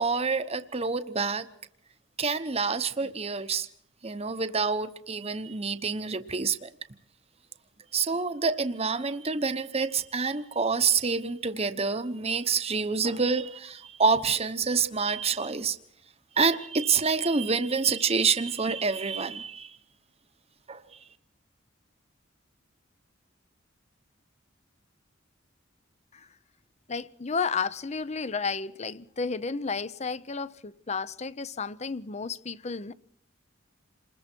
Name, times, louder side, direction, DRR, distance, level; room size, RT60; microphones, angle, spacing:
voice 1, 0.0-1.5 2.2-3.7 4.0-6.7 7.9-15.8 16.4-19.7 20.7-20.8, right 5 dB, 35° right, 1.0 m, -27 dB
voice 2, 26.9-32.9, left 5 dB, 35° left, 0.7 m, -32 dB
28.0 x 21.0 x 4.5 m
head